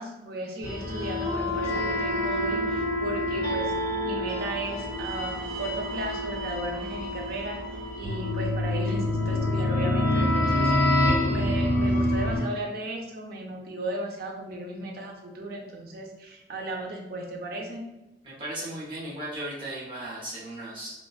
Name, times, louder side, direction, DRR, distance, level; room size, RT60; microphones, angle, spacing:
voice 1, 0.0-3.7 4.1-7.6 8.0-17.8, right 2 dB, 55° right, 1 dB, 0.4 m, -35 dB
sound 1, 0.6-12.4, left 1 dB, 60° left, 1.2 m, -27 dB
voice 2, 18.2-20.9, right 1 dB, 30° right, -8 dB, 0.8 m, -36 dB
2.5 x 2.2 x 2.3 m, 1.0 s
head